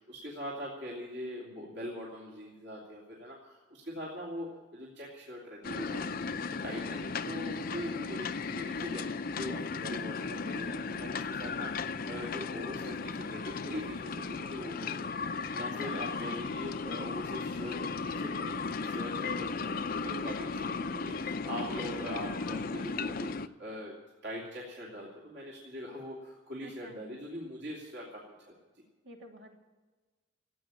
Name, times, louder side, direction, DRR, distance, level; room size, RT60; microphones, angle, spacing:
voice 1, 0.0-6.0 6.6-15.1 15.3-23.9 24.2-28.6, equal, 65° right, -4 dB, 3.0 m, -42 dB
sound 1, 5.6-23.5, left 4 dB, 50° left, 0.6 m, -36 dB
voice 2, 15.6-16.1 26.6-27.0 29.0-29.6, right 1 dB, 85° right, 1 dB, 2.9 m, -51 dB
15.5 x 8.7 x 9.8 m, 1.3 s
head